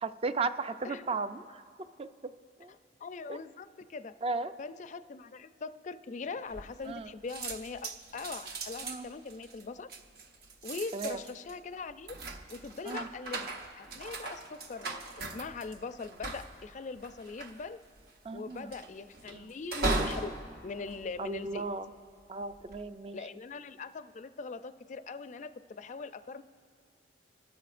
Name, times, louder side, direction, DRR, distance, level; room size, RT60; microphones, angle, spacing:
voice 1, 0.0-2.3 2.6-2.7 3.3-3.4 4.2-4.5 6.9-7.1 8.8-9.1 10.9-11.2 12.9-13.1 18.2-18.7 19.3-19.5 21.2-21.9 22.3-23.2, right 3 dB, 35° right, 11 dB, 0.4 m, -35 dB
voice 2, 2.7-4.1 4.6-9.9 10.6-12.1 12.5-17.8 18.3-20.3 20.6-21.6 23.1-26.4, left 4 dB, 45° left, 12 dB, 0.4 m, -41 dB
sound 1, 6.5-7.0 7.3-21.8 22.4-22.8, right 2 dB, 60° right, 0.9 m, -39 dB
27.0 x 13.0 x 2.5 m, 2.1 s
head